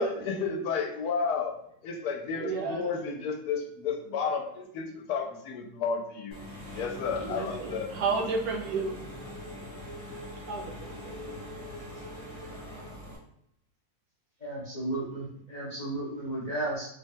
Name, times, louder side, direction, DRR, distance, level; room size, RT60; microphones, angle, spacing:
voice 1, 0.0-1.5 1.8-6.4 6.7-7.9, left 5 dB, 85° left, 2 dB, 1.2 m, -32 dB
voice 2, 2.3-2.9 6.7-9.0 10.5-11.2, right 4 dB, 75° right, 1 dB, 1.1 m, -32 dB
Engine / Mechanisms, 6.3-13.2, left 1 dB, 30° right, 0.5 m, -42 dB
voice 3, 14.4-16.9, right 2 dB, 55° left, -7 dB, 0.4 m, -34 dB
3.3 x 2.2 x 2.7 m, 0.73 s
omnidirectional pair, 1.7 m